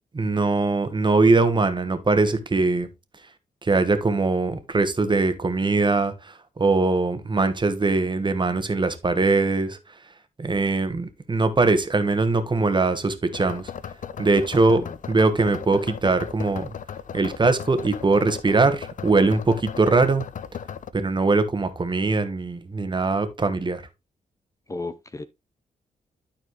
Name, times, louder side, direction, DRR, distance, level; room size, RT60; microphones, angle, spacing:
voice 1, 0.1-2.9 3.6-9.8 10.4-13.7 14.2-16.7 17.1-20.2 20.9-23.8, right 3 dB, 30° right, 1.3 m, -21 dB
sound 1, 13.3-20.9, left 8 dB, 60° left, 0.6 m, -36 dB
voice 2, 24.7-25.2, left 3 dB, 20° left, 0.6 m, -34 dB
12.0 x 4.3 x 3.1 m
cardioid pair, 75°, 15 cm